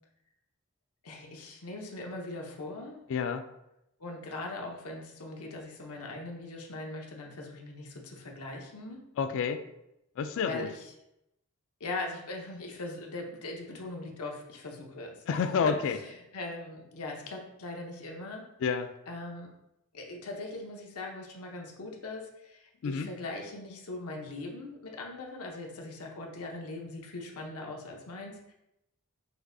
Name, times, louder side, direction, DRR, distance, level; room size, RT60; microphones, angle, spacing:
voice 1, 1.0-3.0 4.0-9.0 10.4-10.8 11.8-15.4 16.3-18.4 19.1-19.5 19.9-28.5, left 2 dB, 80° left, 1 dB, 0.8 m, -40 dB
voice 2, 3.1-3.5 9.2-9.6 10.2-10.7 15.3-16.0 18.6-18.9 22.8-23.1, left 6 dB, 60° left, 10 dB, 0.3 m, -29 dB
6.1 x 2.6 x 2.6 m, 0.86 s
head